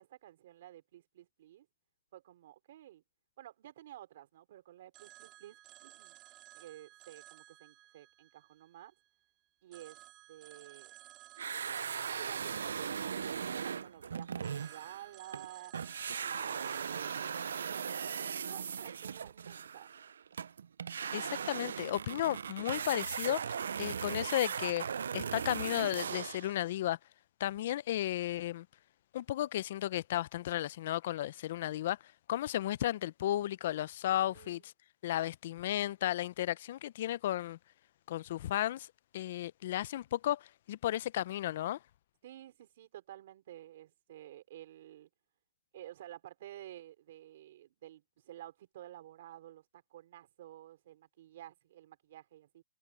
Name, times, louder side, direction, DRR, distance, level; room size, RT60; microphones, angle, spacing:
voice 1, 0.0-1.7 2.1-3.0 3.4-6.2 6.5-8.9 9.6-10.0 10.3-10.9 12.2-15.7 16.2-18.0 18.4-19.9 34.0-34.6 42.2-45.1 45.7-52.6, right 13 dB, 45° right, 3.5 m, -52 dB
Telephone, 4.9-9.2 9.7-13.9 14.4-17.3, right 15 dB, 20° right, 3.9 m, -57 dB
sound 1, 11.4-15.5 15.7-26.5, right 7 dB, 70° right, 0.4 m, -38 dB
voice 2, 21.1-24.8 25.1-27.0 27.4-28.7 29.1-32.0 32.3-34.7 35.0-37.6 38.1-38.9 39.1-41.8, left 13 dB, 45° left, 0.6 m, -34 dB
hypercardioid pair, 160°, 0 cm